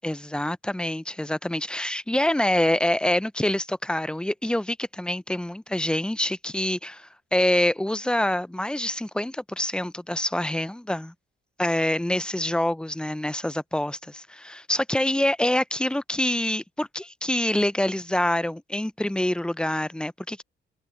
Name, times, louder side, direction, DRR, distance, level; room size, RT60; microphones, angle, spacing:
voice 1, 0.0-11.1 11.6-20.4, left 1 dB, 5° left, 0.7 m, -26 dB
cardioid pair, 90°, 20 cm